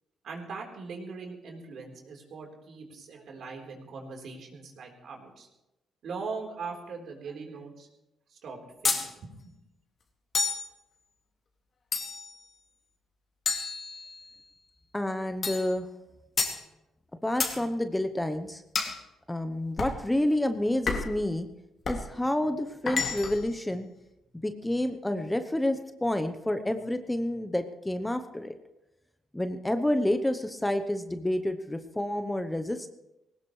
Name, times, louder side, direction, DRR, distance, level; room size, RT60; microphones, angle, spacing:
voice 1, 0.2-5.5 6.0-7.9 8.3-9.5, right 4 dB, 65° right, 1 dB, 4.1 m, -41 dB
sound 1, 8.8-9.1 10.3-10.7 11.9-12.4 13.5-14.4 15.4-15.7 16.4-16.6 17.4-17.6 18.7-19.0 19.8-20.0 20.9-21.2 21.8-22.1 22.9-23.5, left 4 dB, 45° left, 2.5 m, -30 dB
voice 2, 14.9-15.9 17.2-18.6 19.3-21.5 21.9-23.9 24.4-28.5 29.3-32.9, left 1 dB, 10° left, 8 dB, 0.9 m, -29 dB
20.0 x 18.0 x 3.3 m, 0.94 s
cardioid pair, 90°, 0 cm